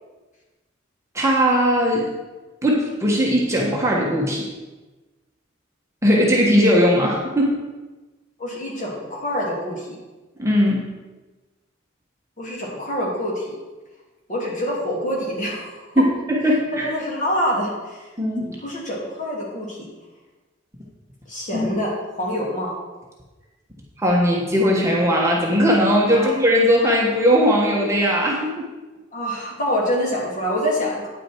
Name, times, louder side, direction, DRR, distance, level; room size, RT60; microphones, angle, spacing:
voice 1, 1.1-2.1 2.6-4.5 6.0-7.5 10.4-10.8 16.0-16.9 18.2-18.5 21.5-21.7 24.0-28.7, equal, 15° right, -3 dB, 1.2 m, -19 dB
voice 2, 8.4-9.9 12.4-13.5 14.3-16.0 16.8-18.0 18.6-19.8 21.3-22.7 26.1-26.3 29.1-31.1, equal, 40° left, -4 dB, 3.0 m, -26 dB
9.1 x 8.9 x 4.5 m, 1.2 s
head